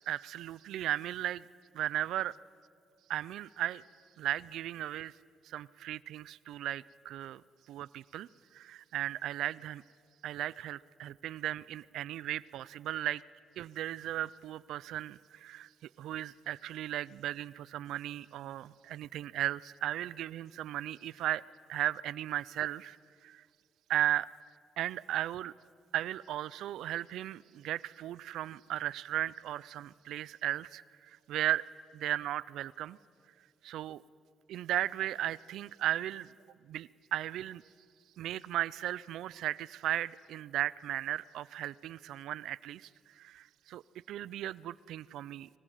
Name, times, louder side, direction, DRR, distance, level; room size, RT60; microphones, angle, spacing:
voice 1, 0.1-1.5 1.7-2.4 3.1-3.8 4.2-5.1 5.4-7.4 7.7-9.8 10.2-13.2 13.6-15.7 16.0-21.4 21.7-23.0 23.2-23.4 23.9-24.3 24.8-25.5 25.9-31.6 31.9-33.0 33.6-34.0 34.5-36.3 36.6-37.6 38.2-43.8 44.1-45.5, right 13 dB, 80° right, 21 dB, 0.5 m, -36 dB
23.5 x 19.5 x 9.1 m, 2.1 s
cardioid pair, 90°, 0 cm